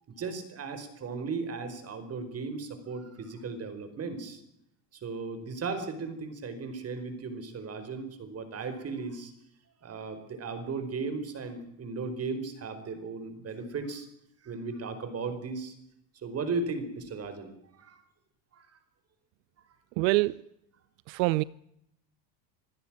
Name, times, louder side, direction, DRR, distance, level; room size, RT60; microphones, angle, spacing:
voice 1, 0.1-4.4 5.0-9.3 9.8-14.1 14.4-15.7 16.1-18.0 18.5-18.7 21.1-21.2, right 4 dB, 30° right, 4.9 m, -36 dB
voice 2, 20.0-20.5 21.1-21.4, right 22 dB, 85° right, 0.8 m, -25 dB
26.5 x 16.0 x 7.5 m
supercardioid pair, 135°, 49 cm